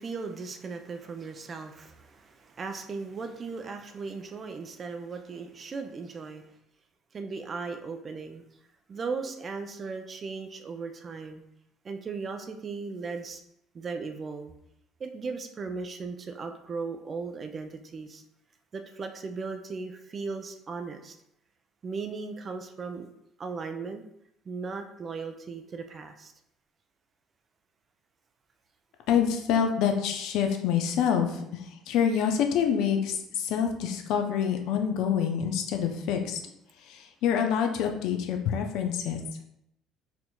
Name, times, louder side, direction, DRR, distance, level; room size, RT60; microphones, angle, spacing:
voice 1, 0.0-6.4 7.1-8.4 8.9-11.4 11.8-13.4 13.7-14.5 15.0-18.2 18.7-21.1 21.8-23.1 23.4-24.0 24.5-26.3, right 4 dB, 40° right, 6 dB, 0.4 m, -37 dB
voice 2, 29.1-36.4 36.8-39.2, left 8 dB, 65° left, 4 dB, 0.5 m, -27 dB
4.2 x 2.7 x 2.2 m, 0.78 s
hypercardioid pair, 55°, 0 cm